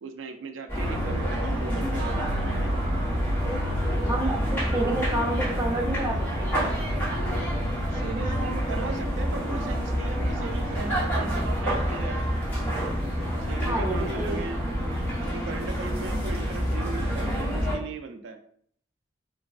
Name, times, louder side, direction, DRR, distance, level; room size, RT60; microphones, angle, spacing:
voice 1, 0.0-2.8 7.9-12.3 13.5-14.6 15.2-18.4, right 4 dB, 90° right, 7 dB, 0.4 m, -38 dB
sound 1, 0.7-17.7, equal, 10° left, 0.9 m, -27 dB
voice 2, 4.0-6.5 13.7-14.4, right 1 dB, 15° right, -2 dB, 0.5 m, -29 dB
3.9 x 2.2 x 2.3 m, 0.63 s
head